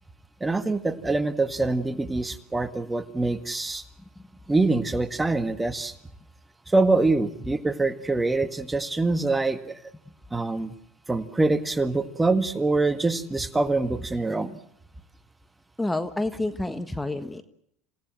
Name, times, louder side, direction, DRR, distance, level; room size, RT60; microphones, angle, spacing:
voice 1, 0.4-3.8 4.5-5.9 6.7-9.8 10.3-10.8 11.1-14.6, right 3 dB, 15° right, 10 dB, 1.8 m, -25 dB
voice 2, 15.8-17.4, left 2 dB, 10° left, 10 dB, 1.5 m, -29 dB
28.0 x 17.5 x 7.6 m, 0.71 s
supercardioid pair, 90°, 0 cm